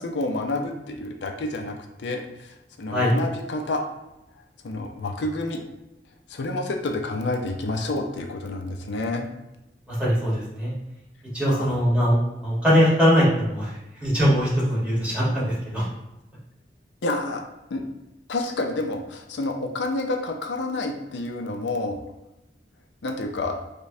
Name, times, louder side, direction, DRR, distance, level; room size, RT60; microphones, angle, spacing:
voice 1, 0.0-3.8 4.6-5.6 6.3-9.3 11.5-11.8 17.0-17.4 17.7-17.8 18.3-22.0 23.0-23.6, left 2 dB, 90° left, 3 dB, 0.5 m, -29 dB
voice 2, 9.9-10.7 11.3-12.2 12.4-13.7 14.0-15.8, equal, 5° right, -8 dB, 1.3 m, -21 dB
4.9 x 2.2 x 2.7 m, 0.94 s
head